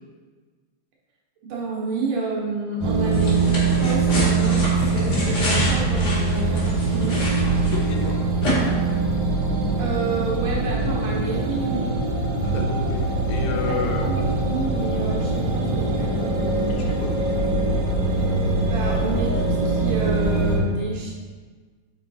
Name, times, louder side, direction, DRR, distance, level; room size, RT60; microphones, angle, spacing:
voice 1, 1.4-7.2 9.8-11.9 13.7-16.3 18.6-21.1, right 4 dB, 90° right, -3 dB, 2.7 m, -29 dB
sound 1, 2.8-20.6, right 3 dB, 65° right, 1.6 m, -23 dB
sound 2, 3.1-8.1 8.4-8.5, left 1 dB, 40° left, 2.0 m, -27 dB
voice 2, 7.7-8.2 12.4-14.1 16.7-17.3, left 6 dB, 75° left, 1 dB, 2.0 m, -31 dB
5.7 x 4.7 x 4.1 m, 1.5 s
omnidirectional pair, 3.6 m